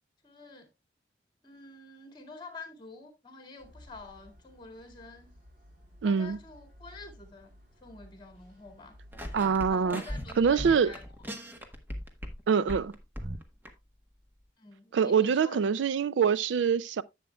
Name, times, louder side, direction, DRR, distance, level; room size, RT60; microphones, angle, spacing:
voice 1, 0.2-0.7 1.4-5.3 6.0-7.5 7.8-9.0 9.7-11.1 14.6-15.6, left 3 dB, 25° left, 2.0 m, -47 dB
sound 1, 3.6-9.7, equal, 55° right, 3.1 m, -55 dB
voice 2, 6.0-6.4 9.3-10.0 10.4-10.9 12.5-12.9 14.9-17.0, right 6 dB, 80° right, 0.4 m, -25 dB
sound 2, 9.1-12.4 12.7-13.7, equal, 10° right, 1.2 m, -38 dB
11.0 x 7.5 x 2.3 m
head